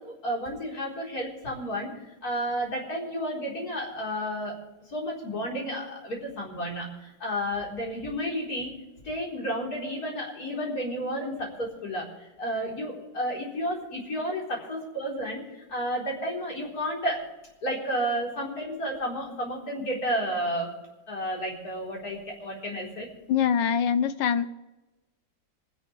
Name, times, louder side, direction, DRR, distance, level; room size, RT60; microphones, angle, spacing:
voice 1, 0.0-4.6 4.9-8.7 9.0-12.1 12.4-17.3 17.6-20.7 21.1-23.1, equal, 50° left, -3 dB, 4.8 m, -31 dB
voice 2, 23.3-24.5, left 8 dB, 75° left, 11 dB, 1.5 m, -24 dB
26.0 x 11.0 x 3.4 m, 1.1 s
omnidirectional pair, 2.0 m